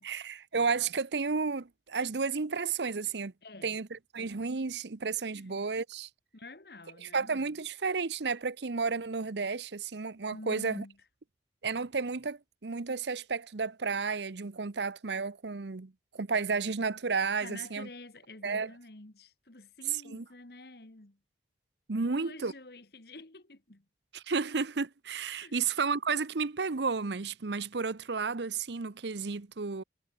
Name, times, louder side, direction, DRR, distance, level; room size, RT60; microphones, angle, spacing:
voice 1, 0.0-3.3 3.6-6.1 7.0-10.8 11.6-17.9 18.4-18.7 19.9-20.2 21.9-22.5 24.1-29.8, right 4 dB, 75° right, 0.8 m, -32 dB
voice 2, 3.4-3.8 5.3-5.6 6.3-7.5 10.3-11.0 17.4-21.2 22.0-23.9 25.4-25.6, left 2 dB, 60° left, 1.9 m, -48 dB
head